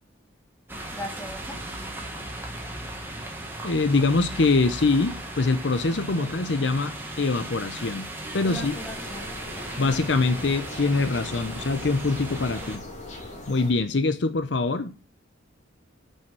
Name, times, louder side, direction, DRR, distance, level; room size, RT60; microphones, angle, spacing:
sound 1, 0.7-12.8, right 1 dB, 10° right, 1.6 m, -37 dB
voice 1, 0.9-1.6 6.1-6.3 8.4-9.3, equal, 10° left, 1.7 m, -39 dB
voice 2, 3.6-8.1 8.3-8.7 9.8-12.8 13.5-14.9, left 3 dB, 65° left, 0.7 m, -24 dB
sound 2, 8.5-13.7, left 2 dB, 40° left, 2.5 m, -41 dB
8.8 x 5.6 x 6.1 m
head